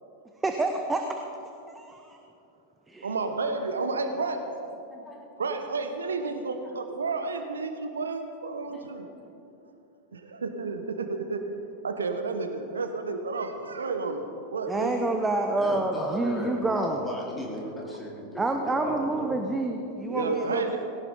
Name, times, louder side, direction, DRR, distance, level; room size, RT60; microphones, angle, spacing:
voice 1, 0.4-1.0 1.7-2.2 2.9-3.1 14.7-17.0 18.4-20.8, right 2 dB, 10° right, 4 dB, 1.0 m, -28 dB
voice 2, 3.0-4.4 5.4-9.1 10.1-11.4 11.8-14.2 14.5-15.0 20.1-20.8, right 3 dB, 70° right, 7 dB, 1.1 m, -31 dB
voice 3, 15.6-19.4, left 1 dB, 15° left, -3 dB, 3.4 m, -35 dB
18.5 x 17.0 x 3.9 m, 2.7 s
figure-of-eight pair, 90°, 0 cm